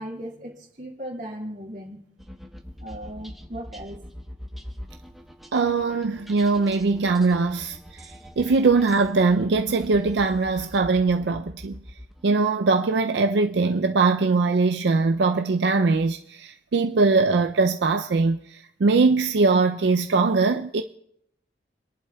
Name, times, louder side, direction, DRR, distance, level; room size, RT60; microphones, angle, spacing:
voice 1, 0.0-2.0 2.8-4.0, equal, 45° right, 2.3 m, -37 dB
sound 1, 2.2-12.4, equal, ahead, 1.0 m, -43 dB
voice 2, 5.5-11.8 12.2-20.8, right 4 dB, 75° right, 0.4 m, -21 dB
29.0 x 11.0 x 2.3 m
head